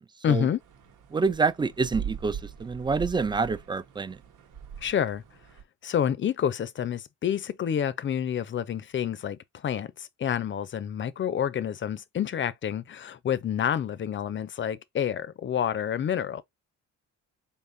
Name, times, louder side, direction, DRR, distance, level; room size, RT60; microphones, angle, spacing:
voice 1, 0.2-0.6 4.8-5.2 5.8-16.4, left 9 dB, 40° left, 0.5 m, -28 dB
sound 1, 0.6-5.6, right 8 dB, 80° right, 1.1 m, -41 dB
voice 2, 1.1-4.2, right 4 dB, 15° right, 0.3 m, -27 dB
4.2 x 3.6 x 2.6 m
cardioid pair, 90°, 30 cm